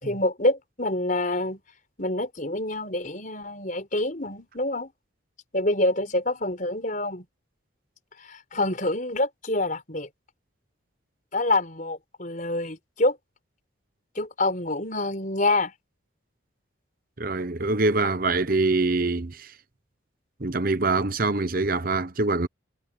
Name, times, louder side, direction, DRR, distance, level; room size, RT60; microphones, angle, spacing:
voice 1, 0.0-1.6 2.0-4.9 5.5-7.3 8.3-10.1 11.3-13.2 14.2-15.7, left 2 dB, 40° left, 5.2 m, -26 dB
voice 2, 17.2-19.5 20.4-22.5, right 3 dB, 45° right, 0.9 m, -24 dB
head